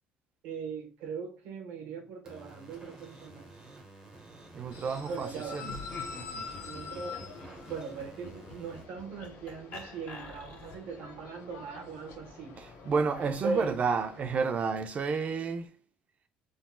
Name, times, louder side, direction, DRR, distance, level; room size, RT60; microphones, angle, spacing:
voice 1, 0.4-3.5 4.9-5.7 6.6-7.3 7.7-12.6 13.4-13.8, right 4 dB, 75° right, 1.2 m, -39 dB
sound 1, 2.3-8.8, right 2 dB, 20° right, 1.3 m, -51 dB
voice 2, 4.5-5.8 12.6-15.8, right 5 dB, 40° right, 0.5 m, -31 dB
sound 2, 4.7-14.3, left 5 dB, 80° left, 1.0 m, -46 dB
Laughter, 5.5-11.0, left 2 dB, 60° left, 1.9 m, -47 dB
3.7 x 2.6 x 2.2 m
supercardioid pair, 95°, 4 cm